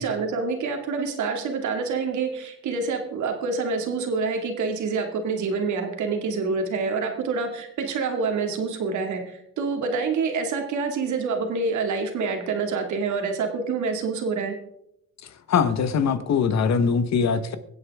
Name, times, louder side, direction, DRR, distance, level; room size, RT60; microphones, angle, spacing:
voice 1, 0.0-14.6, right 4 dB, 75° right, 4 dB, 2.3 m, -27 dB
voice 2, 15.5-17.6, left 6 dB, 60° left, 12 dB, 1.2 m, -22 dB
23.0 x 8.1 x 3.6 m, 0.80 s
cardioid pair, 90°, 30 cm